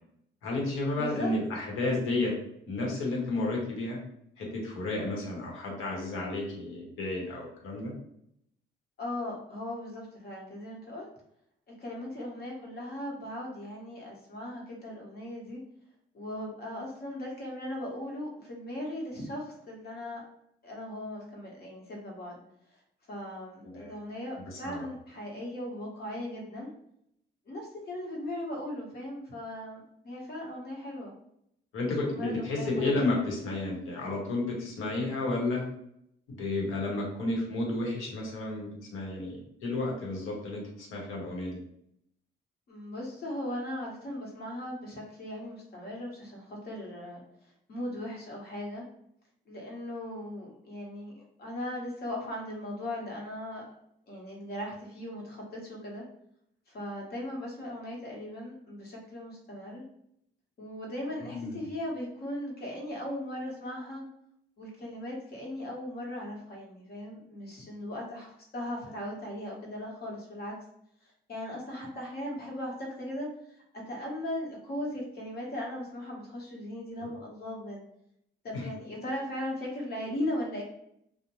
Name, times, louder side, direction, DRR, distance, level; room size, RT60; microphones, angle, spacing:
voice 1, 0.4-2.3 2.7-4.0 4.4-7.9 23.6-23.9 24.5-24.8 31.7-35.6 36.4-41.6 61.3-61.7 77.0-77.1 78.5-78.6, left 2 dB, 85° left, -1 dB, 0.9 m, -32 dB
voice 2, 0.9-1.4 9.0-11.1 11.8-15.6 16.1-20.2 20.6-22.4 22.7-22.8 23.1-26.7 27.5-31.1 31.8-33.0 42.7-47.2 47.7-48.8 49.5-53.7 54.1-56.0 56.7-59.8 60.6-64.0 64.6-70.5 71.3-77.8 78.4-80.6, left 1 dB, 55° left, -2 dB, 1.0 m, -38 dB
2.6 x 2.1 x 3.0 m, 0.73 s
cardioid pair, 90°, 20 cm